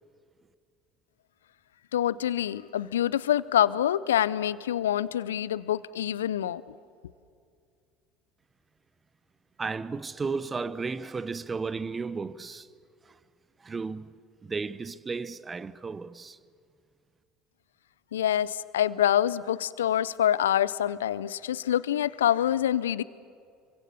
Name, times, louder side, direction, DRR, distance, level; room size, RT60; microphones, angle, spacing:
voice 1, 1.9-6.6 18.1-23.0, left 11 dB, 80° left, 0.5 m, -26 dB
voice 2, 9.6-12.7 13.0-13.2 13.6-16.4, right 4 dB, 25° right, 0.9 m, -34 dB
26.0 x 24.0 x 7.0 m
figure-of-eight pair, 65°, 0 cm